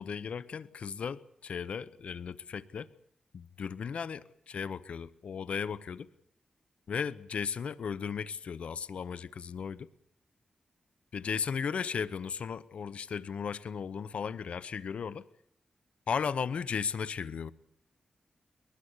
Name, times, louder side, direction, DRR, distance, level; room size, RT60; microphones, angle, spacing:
voice 1, 0.0-2.9 3.3-6.1 6.9-9.9 11.1-15.2 16.1-17.5, left 6 dB, 80° left, 17 dB, 0.9 m, -36 dB
21.5 x 21.0 x 8.1 m, 0.65 s
cardioid pair, 75°, 2 cm